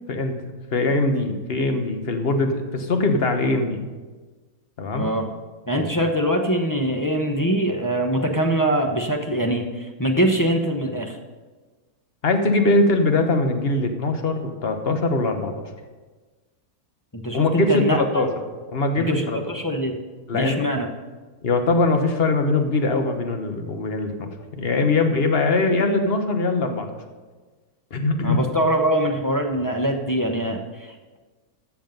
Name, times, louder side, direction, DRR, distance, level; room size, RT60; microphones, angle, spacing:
voice 1, 0.7-3.8 4.8-5.1 5.8-5.9 12.2-15.5 17.3-18.3 18.7-19.4 20.3-20.5 21.4-26.9 27.9-28.4, left 2 dB, 40° left, 6 dB, 1.2 m, -22 dB
voice 2, 4.9-5.3 5.7-11.2 17.1-18.0 19.0-20.0 20.3-20.9 28.2-31.2, right 1 dB, 15° left, 3 dB, 0.7 m, -23 dB
13.5 x 7.3 x 5.3 m, 1.3 s
omnidirectional pair, 1.6 m